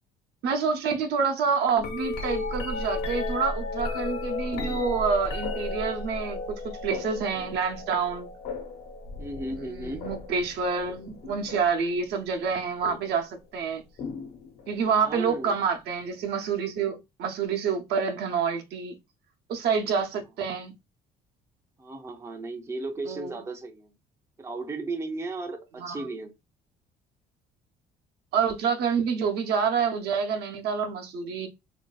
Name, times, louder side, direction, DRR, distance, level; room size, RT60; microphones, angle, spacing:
voice 1, 0.4-8.3 9.5-13.8 14.7-19.0 19.5-20.7 23.0-23.4 25.8-26.1 28.3-31.5, right 6 dB, 75° right, 0.7 m, -28 dB
sound 1, 1.8-11.9 12.8-13.2 14.0-15.0 16.8-16.9, left 3 dB, 75° left, 1.0 m, -34 dB
voice 2, 9.2-10.1 15.0-15.6 21.8-23.9 24.4-26.3, right 2 dB, 15° right, 0.5 m, -35 dB
3.1 x 2.6 x 2.3 m
cardioid pair, 110°, 17 cm